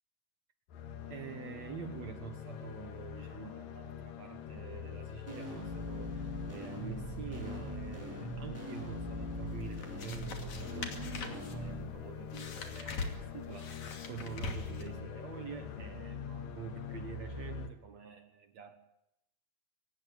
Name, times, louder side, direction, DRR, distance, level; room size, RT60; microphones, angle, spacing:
sound 1, 0.7-17.7, left 6 dB, 65° left, 3.2 m, -44 dB
voice 1, 1.1-18.8, right 9 dB, 60° right, 8 dB, 1.9 m, -47 dB
sound 2, 5.3-11.8, left 1 dB, 5° right, 5.3 m, -42 dB
sound 3, 9.5-15.0, left 4 dB, 50° left, 3.6 m, -43 dB
25.0 x 19.0 x 9.2 m, 0.85 s
omnidirectional pair, 4.4 m